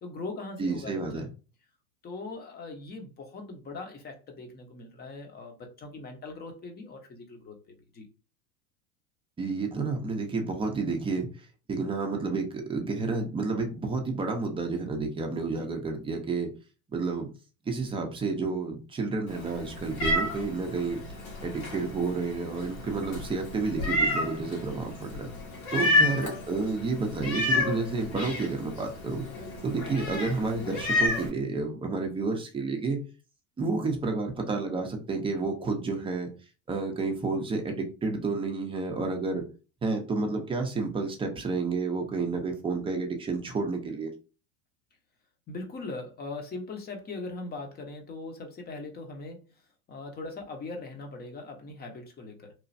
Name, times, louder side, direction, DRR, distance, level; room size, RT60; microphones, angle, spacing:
voice 1, 0.0-1.3 2.0-8.1 15.5-15.7 25.9-26.2 45.5-49.4 49.9-52.5, left 3 dB, 25° left, 0.8 m, -40 dB
voice 2, 0.6-1.3 9.4-11.3 11.7-16.5 16.9-17.3 17.7-21.0 21.4-25.3 25.7-29.3 29.6-33.0 33.6-36.3 36.7-39.4 39.8-44.1, right 3 dB, 15° right, 0.6 m, -30 dB
Meow, 19.3-31.3, left 2 dB, 75° left, 1.5 m, -31 dB
3.1 x 2.3 x 2.5 m
hypercardioid pair, 110°, 42 cm